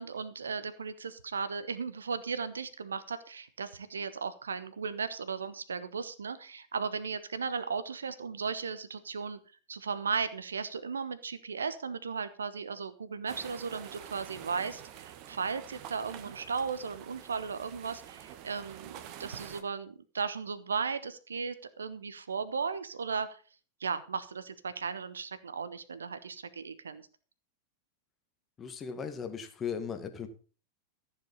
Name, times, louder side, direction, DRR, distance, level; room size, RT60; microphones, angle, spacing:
voice 1, 0.0-9.4 9.7-18.9 19.2-23.4 23.8-27.0, right 5 dB, 70° right, 13 dB, 1.0 m, -36 dB
sound 1, 13.3-19.6, right 11 dB, 40° right, 1.4 m, -47 dB
voice 2, 28.6-30.3, left 6 dB, 25° left, 7 dB, 2.0 m, -37 dB
14.5 x 7.5 x 5.5 m, 0.38 s
figure-of-eight pair, 90°, 0 cm